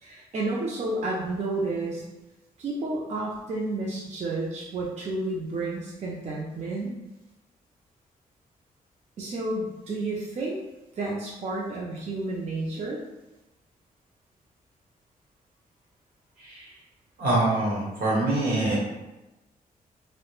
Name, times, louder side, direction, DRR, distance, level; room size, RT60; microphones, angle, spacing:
voice 1, 0.0-2.0 2.6-6.9 9.2-10.6 11.0-13.0, right 2 dB, 50° right, -4 dB, 0.4 m, -31 dB
voice 2, 17.2-18.8, right 2 dB, 80° right, -5 dB, 1.0 m, -24 dB
2.2 x 2.0 x 3.0 m, 1.0 s
cardioid pair, 100°, 15 cm